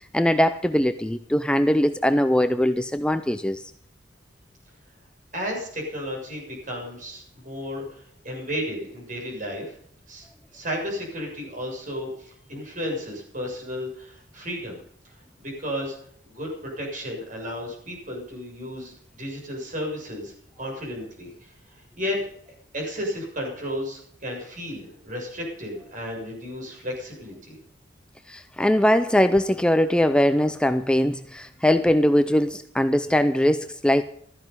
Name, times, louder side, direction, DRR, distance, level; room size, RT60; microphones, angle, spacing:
voice 1, 0.1-3.7 28.3-34.0, equal, 5° left, 10 dB, 0.5 m, -21 dB
voice 2, 5.3-9.8 10.1-10.3 10.5-14.8 15.4-16.0 16.2-22.2 22.7-27.6, equal, 45° right, 1 dB, 6.9 m, -33 dB
15.5 x 13.5 x 5.5 m, 0.66 s
head